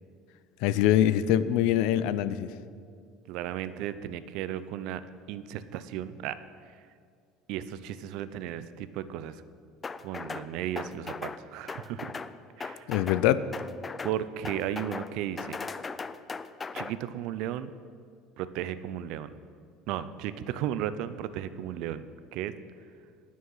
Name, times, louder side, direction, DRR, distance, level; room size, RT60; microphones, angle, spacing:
voice 1, 0.6-2.5 12.9-13.4, left 12 dB, 75° left, 15 dB, 0.5 m, -23 dB
voice 2, 3.3-5.0 5.3-6.4 7.5-9.4 10.0-12.1 12.6-12.8 14.0-15.6 16.7-17.7 18.4-19.3 19.9-22.1 22.3-22.6, right 11 dB, 65° right, 14 dB, 0.5 m, -35 dB
sound 1, 9.8-10.5 10.8-11.4 11.7-12.3 12.6-13.2 13.5-14.2 14.4-15.1 15.4-16.9, left 4 dB, 20° left, 0.4 m, -37 dB
19.0 x 6.3 x 5.7 m, 2.2 s
cardioid pair, 135°, 0 cm